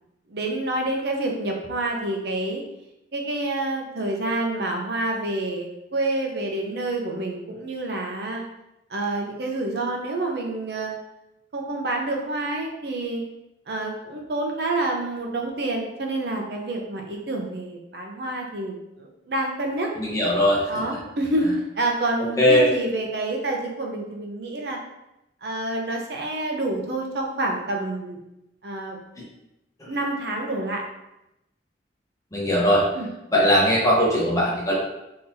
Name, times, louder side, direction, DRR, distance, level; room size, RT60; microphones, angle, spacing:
voice 1, 0.3-2.6 3.1-8.4 8.9-10.9 11.5-13.2 13.7-19.9 20.7-24.8 25.4-28.2 28.6-29.0 29.9-30.8 32.9-33.1, right 2 dB, 65° right, 1 dB, 0.6 m, -28 dB
voice 2, 20.0-20.6 22.4-22.7 32.3-32.8 33.3-34.7, equal, 20° left, -5 dB, 0.9 m, -19 dB
3.8 x 2.9 x 2.7 m, 0.89 s
head